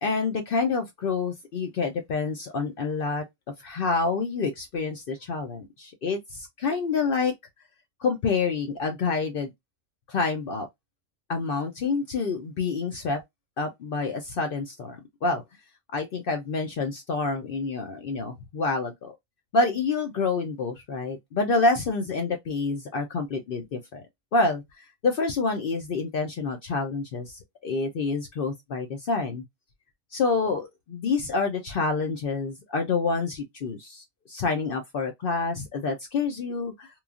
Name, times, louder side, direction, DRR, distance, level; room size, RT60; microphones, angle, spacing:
voice 1, 0.0-3.2 3.6-7.3 8.0-9.5 10.1-10.7 11.3-13.2 13.6-15.4 15.9-19.1 19.5-24.0 24.3-29.4 30.1-36.9, left 4 dB, 60° left, 0.6 m, -27 dB
3.0 x 2.3 x 2.3 m
omnidirectional pair, 1.4 m